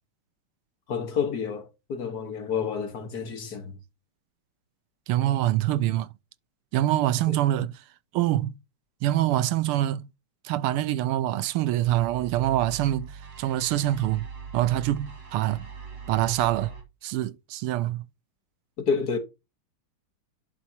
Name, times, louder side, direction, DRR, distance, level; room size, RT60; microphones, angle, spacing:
voice 1, 0.9-3.8 7.3-7.4 18.8-19.2, left 6 dB, 50° left, 1.7 m, -29 dB
voice 2, 5.1-6.1 6.7-7.7 8.1-8.5 9.0-10.1 10.4-14.3 14.5-15.7 16.1-16.7 17.0-18.0, right 13 dB, 80° right, 1.5 m, -25 dB
sound 1, 11.8-16.8, right 5 dB, 60° right, 3.3 m, -42 dB
11.0 x 4.3 x 2.8 m
omnidirectional pair, 2.4 m